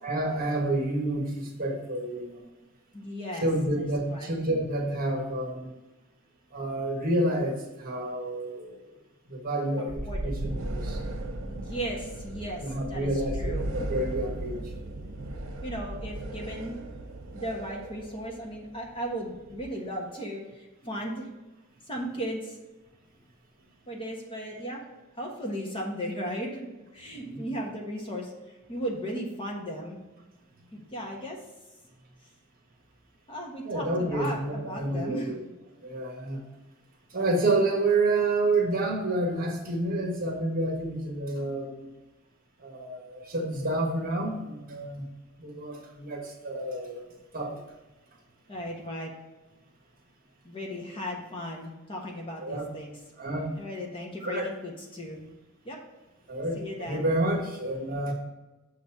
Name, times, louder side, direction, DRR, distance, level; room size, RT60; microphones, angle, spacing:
voice 1, 0.0-2.4 3.4-5.8 6.5-8.8 9.3-11.0 12.6-14.7 27.1-27.4 33.7-35.4 35.8-36.4 37.1-41.9 42.6-45.1 45.4-47.0 47.3-47.6 52.4-52.7 53.2-53.5 54.2-54.5 56.3-58.1, right 2 dB, 40° right, 1 dB, 1.3 m, -29 dB
voice 2, 2.9-3.5 3.8-4.3 9.8-10.3 11.5-12.6 12.9-13.1 13.4-13.7 15.6-16.7 17.3-21.3 21.9-22.6 23.9-24.8 25.2-26.7 26.9-30.0 30.7-31.4 33.3-35.6 48.5-49.1 50.4-52.9 53.5-55.2 55.6-55.8 56.5-57.1, equal, 25° left, -1 dB, 1.3 m, -36 dB
sound 1, 9.9-19.6, right 1 dB, 70° right, 0.9 m, -36 dB
6.7 x 4.1 x 6.0 m, 1.1 s
head